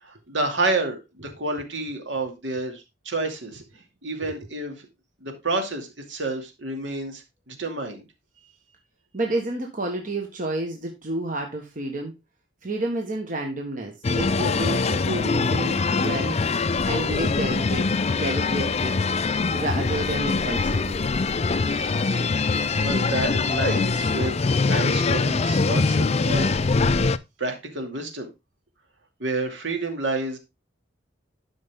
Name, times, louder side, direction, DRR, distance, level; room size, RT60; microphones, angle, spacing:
voice 1, 0.0-3.6 4.0-4.9 5.2-8.0 22.5-26.6 27.4-28.3 29.2-30.4, right 2 dB, 70° right, 4 dB, 2.5 m, -29 dB
voice 2, 9.1-12.1 12.6-16.4 16.7-19.0 19.5-21.1, right 1 dB, 45° right, 2 dB, 1.4 m, -30 dB
sound 1, 14.0-27.2, left 4 dB, 35° left, 0.4 m, -23 dB
12.0 x 5.7 x 3.7 m, 0.24 s
head